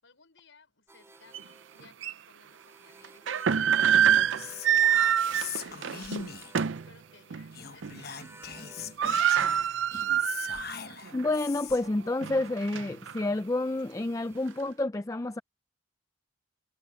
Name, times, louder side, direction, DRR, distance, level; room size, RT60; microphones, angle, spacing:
voice 1, 0.0-6.4 6.7-9.2, left 4 dB, 75° left, 5.2 m, -60 dB
sound 1, 0.9-9.0 9.3-14.7, right 2 dB, 15° right, 3.2 m, -57 dB
sound 2, 1.3-1.4 2.0-2.1 3.0-6.9 7.3-7.5 7.8-8.2 8.5-8.6 8.8-10.7 11.1-11.2 11.9-13.2, right 9 dB, 70° right, 0.5 m, -26 dB
Whispering, 4.4-6.7 7.5-11.9, left 7 dB, 50° left, 1.1 m, -41 dB
voice 2, 11.1-15.4, left 2 dB, 15° left, 0.4 m, -29 dB
head